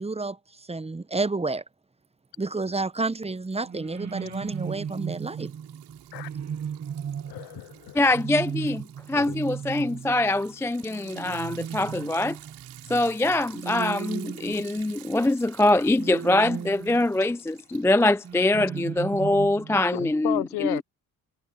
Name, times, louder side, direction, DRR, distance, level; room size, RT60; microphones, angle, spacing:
voice 1, 0.0-1.6 2.4-5.5, right 3 dB, 15° right, 0.8 m, -30 dB
Liquid, 2.0-2.6 3.0-19.1, right 16 dB, 85° right, 7.2 m, -51 dB
sound 1, 3.6-15.2 16.0-17.3 18.2-19.8, right 7 dB, 40° right, 1.3 m, -36 dB
voice 2, 7.3-8.0 9.1-9.4 19.9-20.8, left 19 dB, 75° left, 0.5 m, -32 dB
voice 3, 7.9-12.4 12.9-20.8, left 2 dB, 5° left, 0.4 m, -24 dB
supercardioid pair, 55°, 40 cm